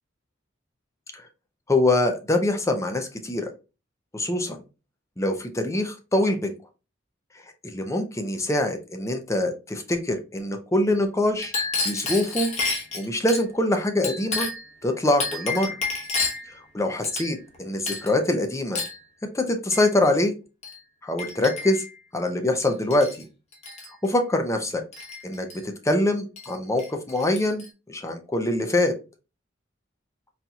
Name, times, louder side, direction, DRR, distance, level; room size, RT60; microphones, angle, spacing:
voice 1, 1.7-3.5 4.1-4.6 5.2-6.5 7.6-11.5 11.8-12.5 12.9-14.5 14.8-15.7 16.7-18.8 19.3-20.3 21.0-21.8 22.1-23.1 24.0-24.8 25.2-29.0, left 1 dB, 15° left, 5 dB, 0.5 m, -24 dB
Chink clink, 11.4-13.4 14.0-14.7 15.2-16.5 17.0-17.6 17.9-18.2 18.8-19.0 19.7-19.9 20.6-20.8 21.2-21.9 22.6-23.2 23.5-23.9 24.9-25.6 26.4-26.5 26.8-27.7, left 3 dB, 35° left, 1.0 m, -30 dB
4.1 x 2.8 x 2.3 m, 0.30 s
head